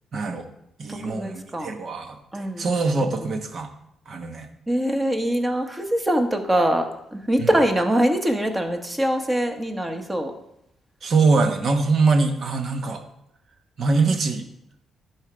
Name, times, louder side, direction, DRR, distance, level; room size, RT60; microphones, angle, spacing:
voice 1, 0.1-0.5 0.8-3.7 4.1-4.5 7.4-7.5 11.0-13.0 13.8-14.5, right 3 dB, 55° right, 6 dB, 1.0 m, -23 dB
voice 2, 0.9-1.8 2.3-3.3 4.7-10.3, right 1 dB, 15° right, 5 dB, 1.2 m, -24 dB
11.0 x 4.6 x 5.1 m, 0.80 s
cardioid pair, 100°, 0 cm